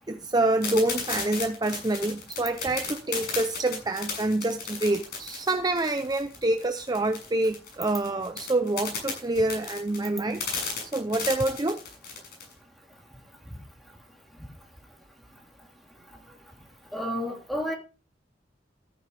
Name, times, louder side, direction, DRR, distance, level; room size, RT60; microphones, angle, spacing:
voice 1, 0.1-10.4 10.9-11.8, right 2 dB, 20° right, 0.6 m, -27 dB
sound 1, 0.6-12.5, left 5 dB, 60° left, 7.1 m, -34 dB
voice 2, 16.9-17.7, equal, ahead, 3.2 m, -30 dB
14.5 x 10.0 x 3.4 m
head